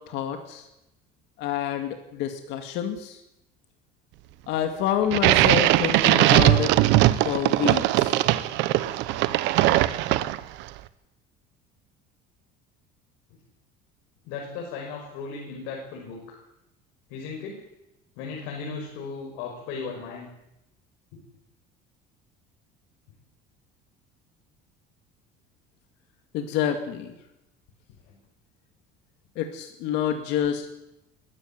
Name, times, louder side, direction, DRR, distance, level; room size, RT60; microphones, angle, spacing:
voice 1, 0.1-0.6 1.4-3.2 4.5-6.7 7.2-8.2 26.3-27.1 29.4-30.7, left 9 dB, 65° left, 5 dB, 2.3 m, -27 dB
sound 1, 5.1-10.6, right 16 dB, 70° right, 1.1 m, -20 dB
voice 2, 14.2-16.4 17.1-17.6 18.2-20.3 21.1-21.2 28.0-28.2, left 5 dB, 80° left, -1 dB, 5.9 m, -36 dB
21.0 x 14.5 x 9.2 m, 0.89 s
cardioid pair, 160°, 19 cm